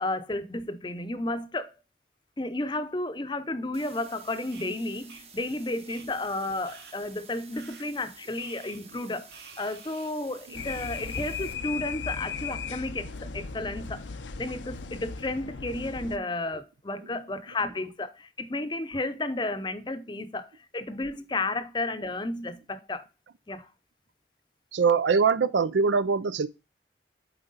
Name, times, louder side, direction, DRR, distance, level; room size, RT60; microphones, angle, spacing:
voice 1, 0.0-1.8 2.4-14.0 14.4-23.1 23.5-23.7, left 2 dB, 25° left, 0.6 m, -32 dB
sound 1, 3.7-11.5, right 5 dB, 35° right, 1.0 m, -51 dB
sound 2, 4.5-4.7 5.1-5.2 5.9-6.0 6.6-6.9 7.5-7.8 8.4-8.8 9.3-10.1 10.6-11.3, right 5 dB, 65° right, 1.3 m, -50 dB
sound 3, 10.5-16.2, left 5 dB, 90° left, 0.6 m, -37 dB
voice 2, 24.7-26.5, right 5 dB, 85° right, 0.5 m, -23 dB
7.5 x 4.5 x 4.0 m
head